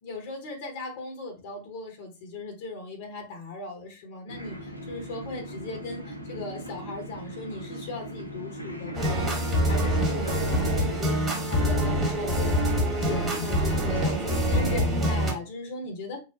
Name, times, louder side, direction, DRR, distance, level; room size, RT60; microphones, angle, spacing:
voice 1, 0.0-9.4 9.6-12.7 13.0-16.2, left 3 dB, 50° left, 1.1 m, -37 dB
sound 1, 4.3-14.9, equal, 90° left, 0.7 m, -39 dB
sound 2, 8.9-15.3, equal, 20° right, 1.4 m, -25 dB
3.9 x 2.1 x 2.9 m
figure-of-eight pair, 90°, 0 cm